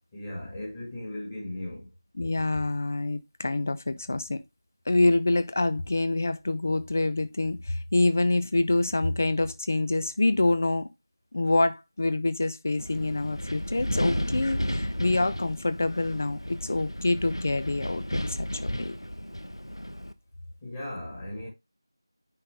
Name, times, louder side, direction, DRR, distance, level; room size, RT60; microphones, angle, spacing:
voice 1, 0.1-1.9 20.6-21.5, left 1 dB, 15° left, 1.8 m, -37 dB
voice 2, 2.2-4.4 4.9-10.9 11.3-19.0, left 2 dB, 35° left, 0.6 m, -26 dB
Wind, 12.8-20.1, equal, 90° left, 0.9 m, -33 dB
9.8 x 4.0 x 3.4 m
figure-of-eight pair, 170°, 2 cm